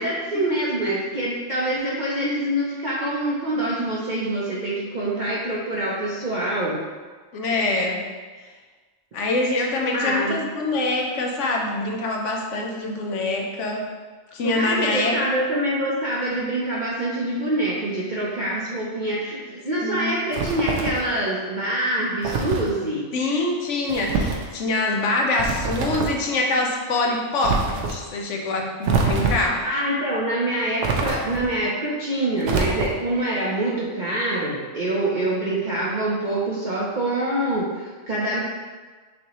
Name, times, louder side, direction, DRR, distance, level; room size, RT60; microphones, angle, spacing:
voice 1, 0.0-6.8 9.9-10.4 14.4-23.1 29.3-38.4, right 1 dB, 45° right, -6 dB, 0.7 m, -25 dB
voice 2, 7.3-8.0 9.1-13.9 14.3-15.2 19.8-20.1 23.1-29.6, left 2 dB, 75° left, 1 dB, 1.0 m, -24 dB
sound 1, 20.3-21.1 22.2-22.7 23.9-24.5 25.3-26.2 27.4-28.0 28.8-29.6 30.8-31.5 32.4-33.1, right 4 dB, 75° right, 0.9 m, -25 dB
6.2 x 2.9 x 2.9 m, 1.4 s
omnidirectional pair, 1.3 m